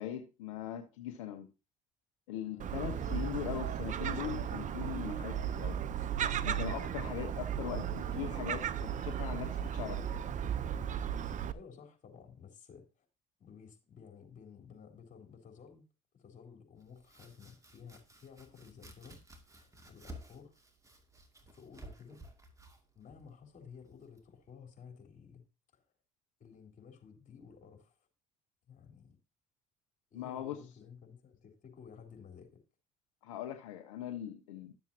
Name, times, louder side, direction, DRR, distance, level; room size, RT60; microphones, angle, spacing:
voice 1, 0.0-1.5 2.3-5.8 6.4-10.0 30.1-30.6 33.2-34.7, left 11 dB, 90° left, 1.0 m, -40 dB
voice 2, 2.5-3.2 11.5-13.1 13.4-15.9 16.1-19.2 19.5-20.6 21.4-22.2 22.9-25.4 25.7-25.8 26.4-28.0 28.7-29.2 30.1-32.6, left 6 dB, 50° left, 4.0 m, -54 dB
Gull seagull, 2.6-11.5, right 9 dB, 50° right, 0.8 m, -35 dB
Domestic sounds home sounds, 16.8-24.5, right 1 dB, 20° right, 2.5 m, -55 dB
12.5 x 7.3 x 2.9 m
hypercardioid pair, 65°, 16 cm